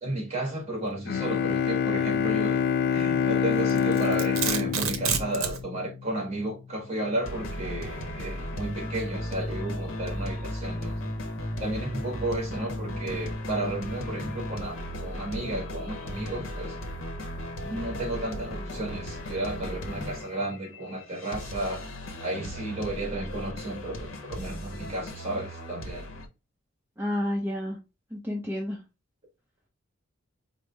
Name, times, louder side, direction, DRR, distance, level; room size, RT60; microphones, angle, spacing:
voice 1, 0.0-2.6 2.9-11.1 11.6-16.7 17.6-21.8 22.2-26.1, right 1 dB, 30° right, 1.4 m, -33 dB
Bowed string instrument, 1.1-6.0, left 7 dB, 55° left, 0.3 m, -26 dB
Domestic sounds home sounds, 3.7-5.6, right 7 dB, 90° right, 0.6 m, -29 dB
sound 1, 7.2-26.3, left 1 dB, 80° left, 0.8 m, -36 dB
voice 2, 27.0-27.8 28.1-28.8, left 1 dB, 10° right, 0.6 m, -30 dB
5.0 x 2.0 x 3.3 m
head